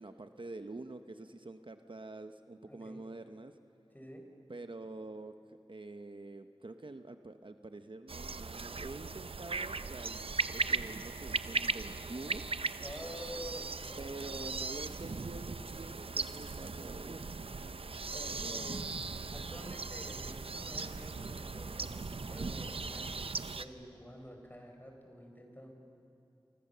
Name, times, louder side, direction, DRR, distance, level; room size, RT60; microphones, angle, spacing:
voice 1, 0.0-3.5 4.5-12.4 14.0-17.3 18.4-18.7, right 2 dB, 65° right, 8 dB, 0.9 m, -46 dB
voice 2, 2.7-3.0 3.9-4.2 12.8-14.3 18.1-18.8 19.3-25.7, equal, 20° left, 3 dB, 4.7 m, -49 dB
sound 1, 8.1-23.6, right 4 dB, 90° right, 0.6 m, -38 dB
29.0 x 24.5 x 6.8 m, 2.8 s
wide cardioid pair, 45°, 9 cm